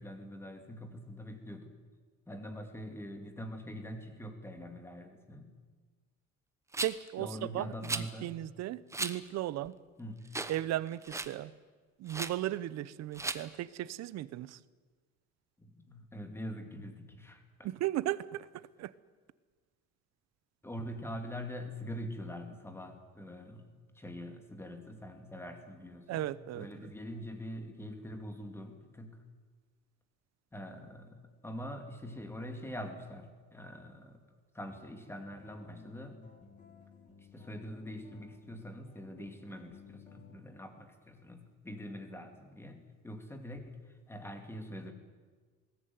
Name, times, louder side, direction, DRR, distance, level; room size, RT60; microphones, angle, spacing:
voice 1, 0.0-1.7 2.3-5.6 7.2-8.3 10.0-10.3 15.6-17.7 20.6-29.2 30.5-34.2 34.5-36.2 37.2-44.9, equal, 10° left, 6 dB, 2.4 m, -44 dB
Rattle, 6.7-7.1 7.8-8.1 8.9-9.2 9.6-9.7 10.3-10.6 10.9-11.3 12.1-12.3 13.1-13.4, right 3 dB, 10° right, 0.9 m, -36 dB
voice 2, 6.8-7.3 7.5-9.8 10.5-11.5 12.0-14.6 17.6-18.4 18.8-18.9 26.1-26.7, right 14 dB, 60° right, 18 dB, 0.9 m, -36 dB
sound 1, 35.0-40.4, left 4 dB, 25° left, 2.4 m, -57 dB
21.0 x 18.5 x 9.4 m, 1.4 s
cardioid pair, 175°, 30 cm